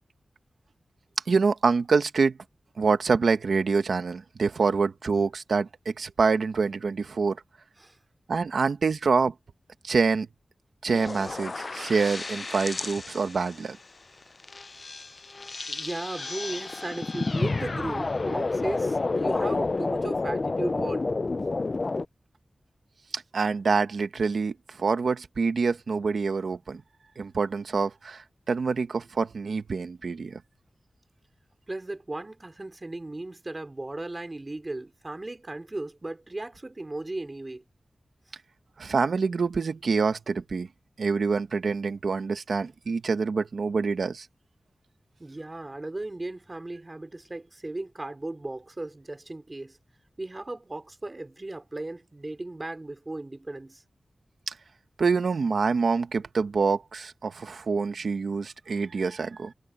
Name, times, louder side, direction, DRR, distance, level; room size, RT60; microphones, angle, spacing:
voice 1, 1.3-2.4 2.8-7.4 8.3-9.3 9.8-10.3 10.8-13.8 23.1-26.8 27.2-30.4 38.8-40.7 41.0-44.2 54.5-54.6 55.0-59.5, right 4 dB, 80° right, 1.3 m, -26 dB
sound 1, 10.9-13.5 14.4-22.1, left 3 dB, 45° left, 0.4 m, -30 dB
voice 2, 15.7-21.1 31.7-37.6 45.2-49.8 50.2-53.8, right 2 dB, 30° right, 3.4 m, -36 dB
wide cardioid pair, 105°, 0 cm